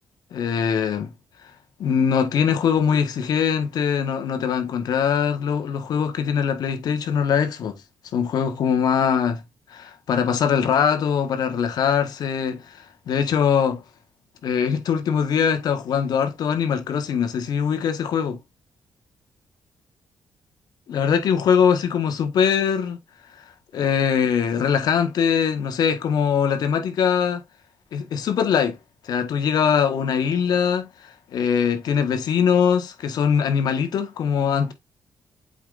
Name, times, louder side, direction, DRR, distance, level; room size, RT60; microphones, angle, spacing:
voice 1, 0.3-1.1 1.8-7.8 8.1-9.4 9.7-12.7 13.1-13.8 14.4-18.4 20.9-23.0 23.7-27.4 27.9-28.8 29.0-30.9 31.3-34.7, left 7 dB, 75° left, 1.5 m, -22 dB
8.0 x 5.0 x 2.6 m
cardioid pair, 70°, 7 cm